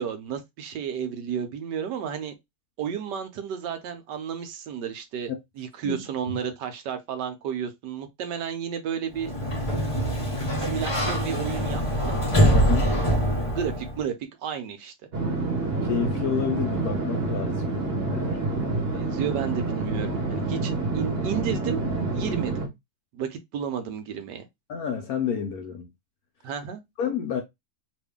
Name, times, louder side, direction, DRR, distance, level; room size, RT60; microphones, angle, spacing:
voice 1, 0.0-2.3 2.8-5.3 5.6-9.3 10.6-12.2 13.5-14.1 14.4-14.9 18.9-22.6 23.1-24.4 26.4-26.8, right 8 dB, 70° right, 1.2 m, -32 dB
voice 2, 5.8-6.4 12.5-12.9 15.8-17.8 18.1-18.4 18.9-19.2 24.7-25.9 27.0-27.4, left 7 dB, 70° left, 0.9 m, -30 dB
Sliding door, 9.1-14.0, equal, 25° left, 0.7 m, -24 dB
sound 1, 15.1-22.7, right 3 dB, 40° right, 1.1 m, -28 dB
3.0 x 2.6 x 3.4 m
omnidirectional pair, 2.0 m